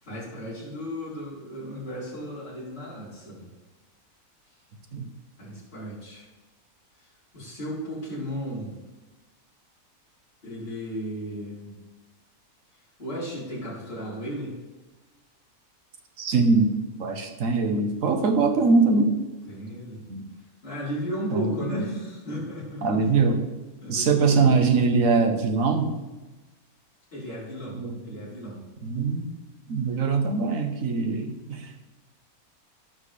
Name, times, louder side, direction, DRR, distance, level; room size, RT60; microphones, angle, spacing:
voice 1, 0.0-3.5 5.4-6.3 7.0-7.1 7.3-8.7 10.4-11.7 13.0-14.5 19.5-20.0 20.6-22.9 23.8-24.4 27.1-28.6, equal, 40° left, -9 dB, 4.1 m, -35 dB
voice 2, 16.2-16.7 17.0-19.1 20.1-20.2 21.3-21.9 22.8-23.4 23.9-25.9 27.7-28.0 28.8-29.3 29.7-31.7, right 4 dB, 65° right, 5 dB, 1.4 m, -22 dB
15.0 x 6.2 x 3.4 m, 1.1 s
omnidirectional pair, 1.6 m